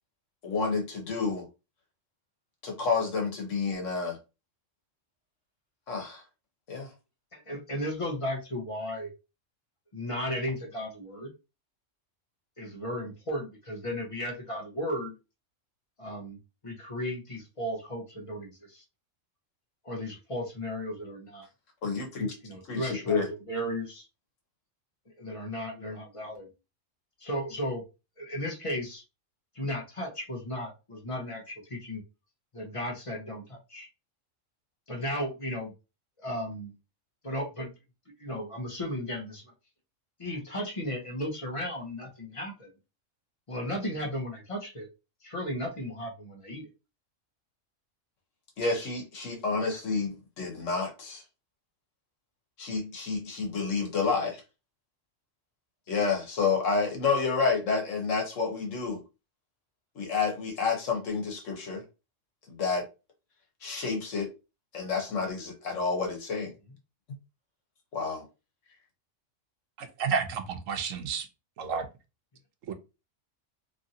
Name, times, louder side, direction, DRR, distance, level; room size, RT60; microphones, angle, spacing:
voice 1, 0.4-1.4 2.6-4.2 5.9-6.2 6.7-6.9 21.8-22.3 22.7-23.3 48.6-51.2 52.6-54.4 55.9-59.0 59.9-61.8 62.5-62.8 63.6-64.3 64.7-66.5 67.9-68.2, left 4 dB, 75° left, 1.3 m, -29 dB
voice 2, 7.3-9.1 9.9-11.3 12.6-15.1 16.0-16.4 16.6-18.8 19.8-21.5 22.4-24.1 25.2-26.5 27.2-27.8 28.2-29.0 29.5-32.0 32.5-33.9 34.9-35.7 36.2-36.7 37.2-37.7 38.2-39.4 40.2-42.7 43.5-44.9 45.2-46.7, equal, 30° left, 0.7 m, -35 dB
voice 3, 69.8-71.3 71.6-71.9 72.7-72.8, right 6 dB, 90° right, 1.0 m, -31 dB
3.0 x 2.5 x 2.7 m
omnidirectional pair, 1.3 m